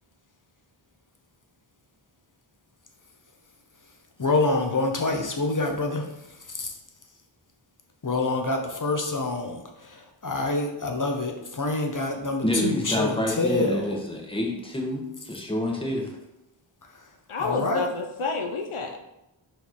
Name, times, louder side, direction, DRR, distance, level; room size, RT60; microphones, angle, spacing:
voice 1, 4.2-6.0 6.5-6.7 8.0-13.9 17.4-17.8, left 2 dB, 40° left, 3 dB, 1.1 m, -26 dB
voice 2, 12.4-16.1, left 1 dB, 10° left, 0 dB, 1.4 m, -28 dB
voice 3, 17.3-19.0, left 4 dB, 85° left, 3 dB, 0.9 m, -29 dB
5.3 x 4.6 x 4.7 m, 0.87 s
wide cardioid pair, 75°, 49 cm